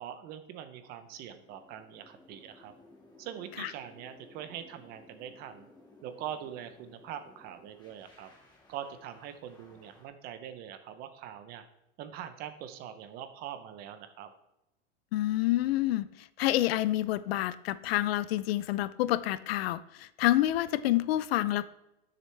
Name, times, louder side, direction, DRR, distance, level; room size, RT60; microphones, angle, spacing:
voice 1, 0.0-2.7 3.2-5.7 6.0-8.3 8.7-11.6 12.0-14.3, right 10 dB, 25° right, 10 dB, 0.5 m, -43 dB
sound 1, 0.7-10.1, left 2 dB, 10° left, 1.7 m, -58 dB
voice 2, 15.1-21.6, left 15 dB, 55° left, 17 dB, 0.4 m, -28 dB
10.5 x 6.6 x 3.2 m, 0.91 s
supercardioid pair, 155°, 36 cm